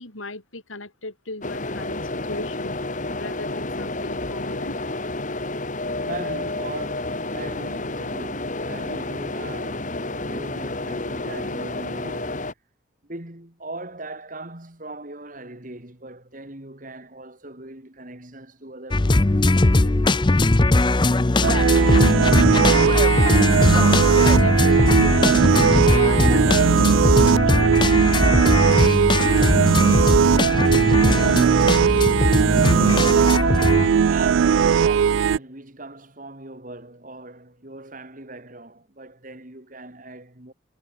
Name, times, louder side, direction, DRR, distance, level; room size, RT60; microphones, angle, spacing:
voice 1, 0.0-2.8 3.2-4.8 23.7-30.1, left 2 dB, 85° left, 5.3 m, -36 dB
sound 1, 1.4-12.5, left 2 dB, 40° left, 2.2 m, -30 dB
voice 2, 6.0-12.5 13.0-20.3 32.9-40.5, right 2 dB, 40° right, 2.9 m, -39 dB
sound 2, 18.9-33.9, left 2 dB, 25° left, 0.6 m, -19 dB
sound 3, 21.4-35.4, right 7 dB, 75° right, 0.3 m, -18 dB
head